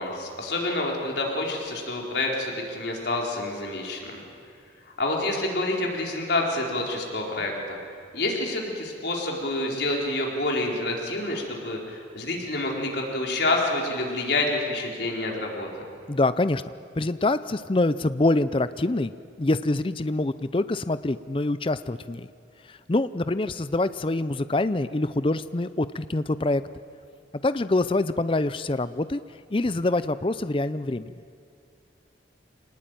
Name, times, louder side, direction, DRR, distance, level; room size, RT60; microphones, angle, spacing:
voice 1, 0.0-4.2 5.0-7.8 8.1-15.9, left 2 dB, 65° left, -1 dB, 4.2 m, -28 dB
voice 2, 16.1-16.6 17.0-19.1 19.4-22.3 22.7-26.6 27.4-29.2 29.5-31.1, left 2 dB, 30° left, 14 dB, 0.5 m, -25 dB
25.5 x 19.0 x 9.1 m, 2.4 s
head